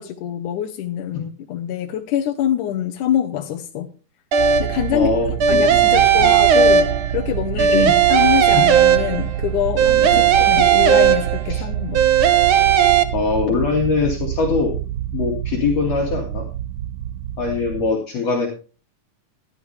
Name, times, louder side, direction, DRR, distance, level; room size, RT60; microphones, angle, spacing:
voice 1, 0.0-3.9 4.6-5.1 5.5-6.9 7.1-7.8 8.1-12.0, left 10 dB, 80° left, 3 dB, 2.5 m, -24 dB
sound 1, 4.3-4.9 5.4-7.3 7.6-9.4 9.8-11.6 11.9-13.0, right 8 dB, 55° right, 1.6 m, -15 dB
sound 2, 4.4-17.9, right 12 dB, 75° right, 1.6 m, -27 dB
voice 2, 4.9-6.0 7.5-8.0 8.5-8.6 10.1-10.3 11.5-11.6 13.1-14.7 15.1-16.5 17.4-18.5, left 4 dB, 55° left, 0 dB, 3.1 m, -22 dB
16.0 x 11.5 x 3.3 m, 0.36 s
omnidirectional pair, 3.6 m